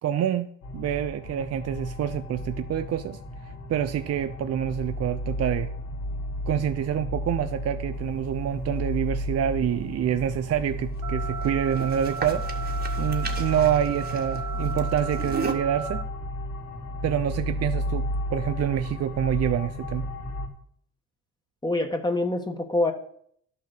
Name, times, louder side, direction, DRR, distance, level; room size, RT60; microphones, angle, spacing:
voice 1, 0.0-3.2 3.5-5.7 6.5-12.7 13.0-16.1 17.0-20.1, right 10 dB, 55° right, 10 dB, 0.6 m, -27 dB
sound 1, 0.6-20.5, left 1 dB, 80° left, 2.1 m, -33 dB
sound 2, 7.9-15.5, right 4 dB, 30° right, 1.8 m, -38 dB
sound 3, 11.0-16.0, right 5 dB, 75° right, 1.0 m, -35 dB
voice 2, 21.6-22.9, left 2 dB, 15° left, 4 dB, 1.6 m, -25 dB
11.0 x 6.7 x 6.7 m, 0.65 s
cardioid pair, 90°, 30 cm